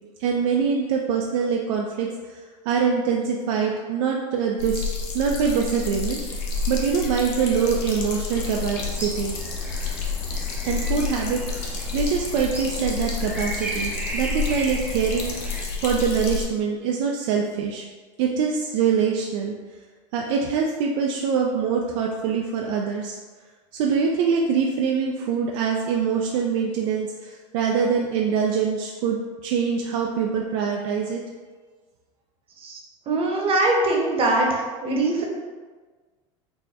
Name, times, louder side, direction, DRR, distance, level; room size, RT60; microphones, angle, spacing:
voice 1, 0.2-2.1 2.7-4.8 5.1-9.4 10.6-17.8 18.2-19.5 20.1-23.2 23.8-31.2, right 6 dB, 60° right, 0 dB, 0.4 m, -24 dB
sound 1, 4.6-16.4, left 5 dB, 60° left, 0.8 m, -30 dB
sound 2, 8.3-15.7, right 1 dB, 5° right, 0.6 m, -36 dB
voice 2, 33.1-35.2, right 2 dB, 35° right, -1 dB, 0.9 m, -22 dB
4.1 x 2.1 x 3.4 m, 1.4 s
hypercardioid pair, 95°, 17 cm